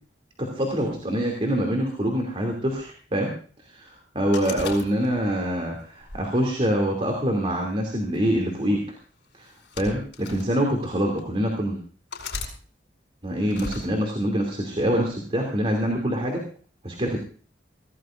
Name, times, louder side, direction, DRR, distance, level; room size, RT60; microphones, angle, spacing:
voice 1, 0.4-3.3 3.7-8.8 9.4-9.5 9.8-11.8 13.2-16.4 16.8-17.2, equal, 30° right, 1 dB, 2.7 m, -25 dB
sound 1, 4.3-5.4 6.0-7.2 8.1-8.4 9.4-10.5 11.2-11.3 12.1-12.5 13.5-13.9, left 4 dB, 75° left, 5.0 m, -36 dB
24.0 x 17.0 x 2.5 m, 0.42 s
head